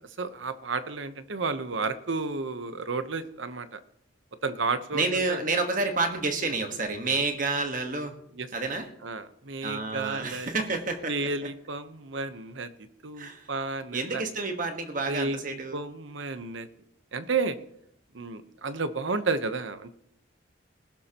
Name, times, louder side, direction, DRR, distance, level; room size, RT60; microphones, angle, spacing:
voice 1, 0.2-3.8 4.4-5.4 8.4-8.5 9.0-10.5 11.1-12.7 13.0-14.2 15.1-15.4 15.7-16.7 17.1-17.6 18.1-19.9, right 4 dB, 70° right, 11 dB, 0.9 m, -32 dB
voice 2, 4.9-8.1 8.5-8.9 9.6-11.3 13.2-13.5 13.9-15.8, right 3 dB, 40° right, 5 dB, 1.4 m, -29 dB
19.5 x 12.0 x 3.0 m, 0.74 s
head